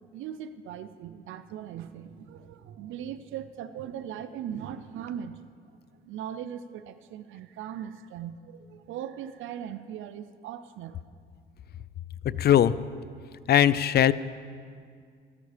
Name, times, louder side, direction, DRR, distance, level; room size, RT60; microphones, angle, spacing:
voice 1, 0.0-5.4 6.1-11.0, right 9 dB, 80° right, 12 dB, 0.5 m, -39 dB
voice 2, 12.4-12.7 13.5-14.1, left 10 dB, 55° left, 17 dB, 0.5 m, -19 dB
13.5 x 12.5 x 5.0 m, 2.1 s
cardioid pair, 90°, 20 cm